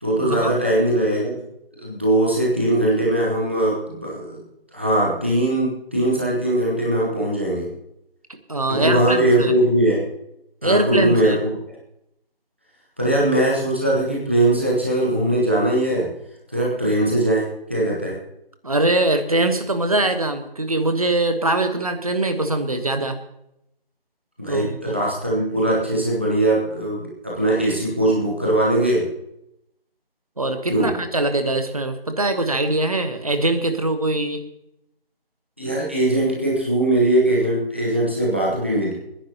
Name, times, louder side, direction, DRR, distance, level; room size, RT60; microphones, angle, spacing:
voice 1, 0.0-1.4 1.8-4.4 4.7-7.7 8.7-10.0 10.6-11.5 13.0-16.1 16.5-18.2 24.4-29.1 30.7-30.9 35.6-38.9, right 1 dB, 10° right, -5 dB, 1.0 m, -20 dB
voice 2, 8.5-9.5 10.6-11.4 18.6-23.2 24.5-24.9 30.4-34.4, right 2 dB, 40° right, 8 dB, 1.2 m, -22 dB
29.5 x 10.0 x 2.9 m, 0.82 s
figure-of-eight pair, 175°, 29 cm